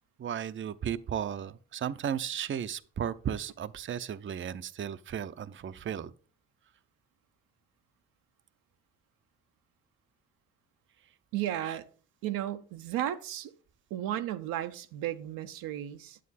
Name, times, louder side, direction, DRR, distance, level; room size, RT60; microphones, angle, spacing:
voice 1, 0.2-6.1, right 9 dB, 35° right, 0.6 m, -35 dB
voice 2, 11.3-11.8 12.2-13.5 13.9-16.2, right 12 dB, 80° right, 0.7 m, -34 dB
9.2 x 7.6 x 4.1 m
supercardioid pair, 55°, 34 cm